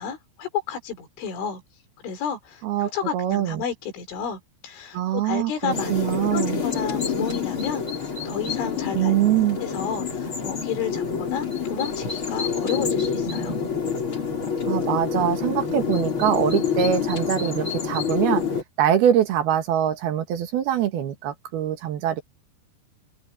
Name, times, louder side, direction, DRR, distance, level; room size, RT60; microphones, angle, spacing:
voice 1, 0.0-1.6 2.0-6.0 6.3-9.2 9.6-13.6, left 7 dB, 85° left, 6.3 m, -32 dB
voice 2, 2.6-3.6 4.9-6.6 8.9-9.6 14.7-18.4 18.8-22.2, right 10 dB, 65° right, 2.9 m, -23 dB
sound 1, 5.7-18.6, left 6 dB, 30° left, 4.4 m, -27 dB
open air
omnidirectional pair, 5.4 m